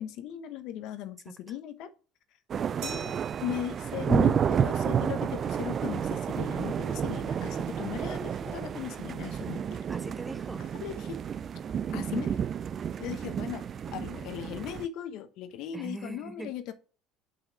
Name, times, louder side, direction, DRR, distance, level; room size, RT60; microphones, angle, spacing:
voice 1, 0.0-1.9 2.8-9.6 10.8-11.2 11.9-12.4 13.0-16.7, left 10 dB, 65° left, 0.9 m, -38 dB
sound 1, 2.5-14.9, right 8 dB, 45° right, 0.4 m, -31 dB
Glass, 2.8-5.3, right 6 dB, 65° right, 3.1 m, -46 dB
voice 2, 9.9-10.7 15.7-16.6, right 2 dB, 10° right, 0.8 m, -41 dB
5.7 x 5.6 x 5.7 m
hypercardioid pair, 80°, 0 cm